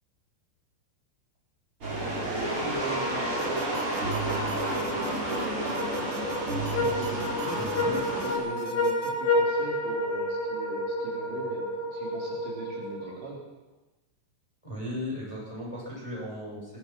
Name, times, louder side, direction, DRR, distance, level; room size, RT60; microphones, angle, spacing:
sound 1, 1.8-8.4, right 1 dB, 25° right, 6.9 m, -30 dB
voice 1, 2.3-7.7 8.2-13.4, right 3 dB, 65° right, -2 dB, 6.1 m, -41 dB
sound 2, 3.4-9.1, right 4 dB, 90° right, 5.6 m, -40 dB
sound 3, 5.8-13.3, left 1 dB, 60° left, 6.1 m, -30 dB
voice 2, 7.5-8.0 13.0-13.2 14.6-16.8, left 1 dB, 5° left, -5 dB, 7.2 m, -37 dB
21.0 x 20.5 x 6.0 m, 1.1 s
omnidirectional pair, 5.7 m